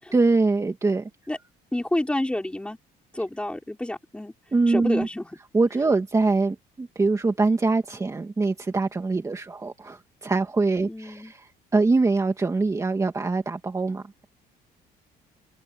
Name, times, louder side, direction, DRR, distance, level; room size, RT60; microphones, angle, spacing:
voice 1, 0.1-1.1 4.5-5.1 5.5-14.2, right 3 dB, 20° right, 2.5 m, -23 dB
voice 2, 1.7-2.8 3.1-4.3 4.7-5.3 10.9-11.3, left 1 dB, 5° left, 4.8 m, -29 dB
cardioid pair, 135°, 17 cm